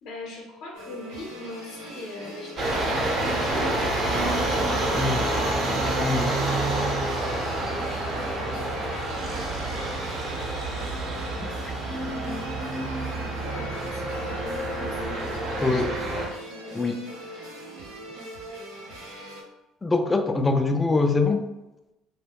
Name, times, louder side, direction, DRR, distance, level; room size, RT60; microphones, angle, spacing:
voice 1, 0.0-4.4 4.7-5.8 7.3-7.9 8.3-8.8 11.9-12.6 13.1-17.0, left 2 dB, 65° left, -1 dB, 0.7 m, -42 dB
sound 1, 0.7-19.4, right 1 dB, 80° right, 0.7 m, -41 dB
sound 2, 2.6-16.3, right 2 dB, 45° right, 0.9 m, -28 dB
voice 2, 4.9-5.2 6.0-6.4 15.6-15.9 16.7-17.0 19.8-21.4, left 3 dB, 20° left, 6 dB, 0.3 m, -23 dB
2.3 x 2.1 x 3.3 m, 0.98 s
hypercardioid pair, 75°, 0 cm